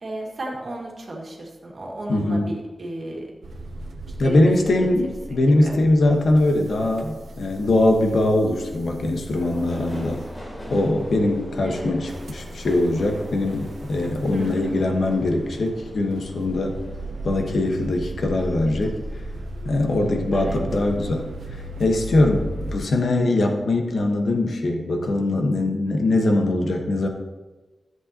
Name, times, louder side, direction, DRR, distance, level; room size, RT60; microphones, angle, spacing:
voice 1, 0.0-3.3 4.2-4.9 5.3-5.8 11.6-11.9 14.3-14.8 20.3-20.6, right 1 dB, 50° right, -2 dB, 1.9 m, -34 dB
voice 2, 2.1-2.5 4.2-10.2 10.7-16.8 17.2-19.0 19.6-21.3 21.8-27.1, left 2 dB, 75° left, 3 dB, 1.2 m, -21 dB
sound 1, 3.4-22.8, right 1 dB, 85° right, 0.7 m, -36 dB
Subway metro underground, 9.3-20.1 20.4-21.1 21.4-21.5, equal, 35° left, 2.8 m, -42 dB
13.5 x 7.9 x 2.9 m, 1.2 s
wide cardioid pair, 135°, 0 cm